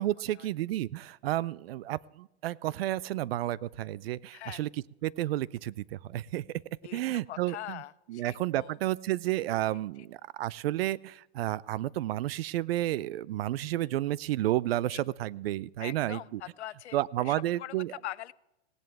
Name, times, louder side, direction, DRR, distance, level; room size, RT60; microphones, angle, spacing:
voice 1, 0.0-4.7 5.0-6.6 6.9-7.8 8.1-16.4 16.9-17.9, right 14 dB, 60° right, 22 dB, 0.5 m, -31 dB
voice 2, 7.3-8.8 14.9-15.0 15.8-18.3, left 13 dB, 85° left, 19 dB, 0.6 m, -43 dB
17.5 x 11.0 x 3.5 m, 0.90 s
hypercardioid pair, 140°, 33 cm